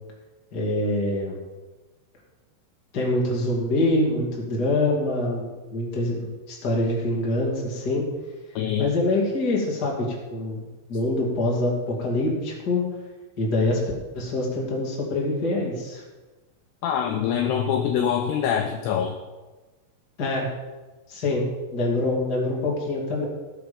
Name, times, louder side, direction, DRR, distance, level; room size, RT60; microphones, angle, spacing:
voice 1, 0.5-1.4 2.9-8.0 8.8-10.6 10.9-12.8 13.4-13.8 14.1-16.0 20.2-20.5 21.1-23.2, left 2 dB, 30° left, -2 dB, 2.2 m, -25 dB
voice 2, 8.6-8.9 16.8-19.2, left 8 dB, 80° left, 5 dB, 2.5 m, -24 dB
18.0 x 6.9 x 5.3 m, 1.2 s
omnidirectional pair, 5.4 m